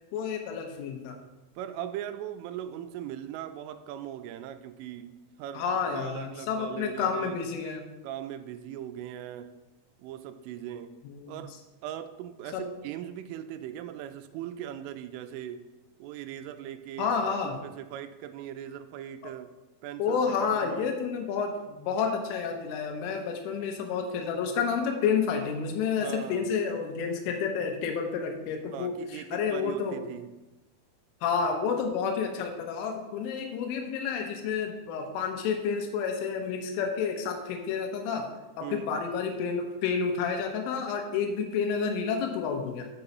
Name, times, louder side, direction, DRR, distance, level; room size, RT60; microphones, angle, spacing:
voice 1, 0.1-1.2 5.5-7.9 11.0-11.4 12.5-12.7 17.0-17.6 20.0-30.0 31.2-38.3 38.6-42.9, left 6 dB, 85° left, 4 dB, 3.4 m, -30 dB
voice 2, 1.6-7.4 8.0-9.5 10.0-10.9 11.3-11.6 11.8-15.6 16.0-17.1 17.6-19.5 19.8-20.9 26.0-26.5 28.7-30.3 38.6-38.9, right 11 dB, 85° right, 10 dB, 3.1 m, -39 dB
7.0 x 5.5 x 5.3 m, 1.0 s
omnidirectional pair, 5.7 m